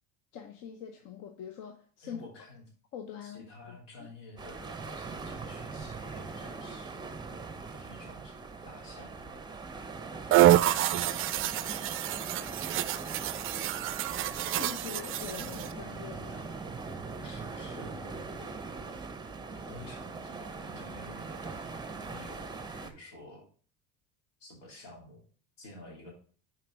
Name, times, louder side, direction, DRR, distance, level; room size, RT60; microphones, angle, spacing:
voice 1, 0.3-2.3 2.9-4.1 14.4-16.7, left 8 dB, 60° left, 5 dB, 0.9 m, -44 dB
voice 2, 2.0-2.6 3.2-7.0 7.7-8.4 8.6-9.4 10.5-11.8 17.2-19.0 19.5-23.5 24.4-25.2 25.6-26.1, left 2 dB, 80° left, -1 dB, 2.8 m, -51 dB
sound 1, 4.4-22.9, right 4 dB, 10° right, 0.8 m, -41 dB
sound 2, 10.3-15.7, right 14 dB, 35° right, 0.4 m, -27 dB
6.0 x 4.6 x 4.5 m, 0.43 s
supercardioid pair, 95°, 37 cm